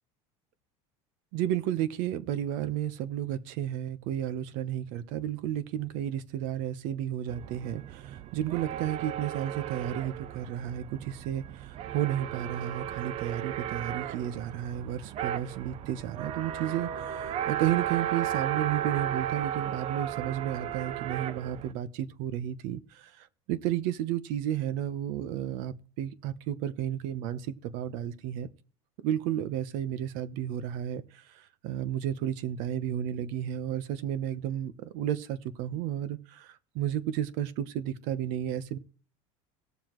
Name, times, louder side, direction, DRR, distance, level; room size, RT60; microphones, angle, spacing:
voice 1, 1.3-28.5 29.0-38.8, right 11 dB, 65° right, 1.0 m, -32 dB
sound 1, 7.3-21.7, right 11 dB, 40° right, 0.5 m, -35 dB
18.5 x 7.0 x 3.1 m
supercardioid pair, 130°, 15 cm